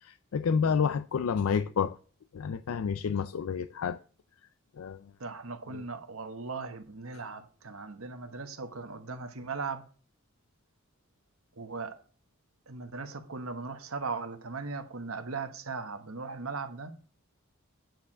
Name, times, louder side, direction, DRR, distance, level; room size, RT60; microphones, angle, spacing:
voice 1, 0.0-1.9 2.3-4.0 4.8-5.0 5.7-5.8, left 6 dB, 80° left, 0.4 m, -29 dB
voice 2, 5.2-9.8 11.6-12.0 12.7-16.9, right 4 dB, 80° right, 1.2 m, -38 dB
9.1 x 4.8 x 5.9 m
head